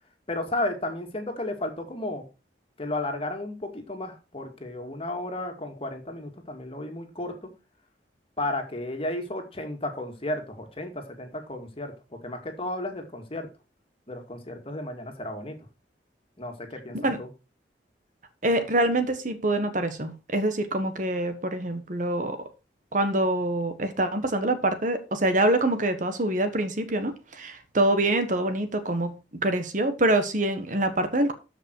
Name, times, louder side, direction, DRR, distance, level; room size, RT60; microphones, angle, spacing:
voice 1, 0.3-2.2 2.8-7.5 8.4-13.5 14.1-15.6 16.4-17.3, left 1 dB, 30° left, 2.2 m, -33 dB
voice 2, 18.4-22.4 22.9-31.3, right 1 dB, 45° right, 1.4 m, -25 dB
13.5 x 5.5 x 4.7 m
head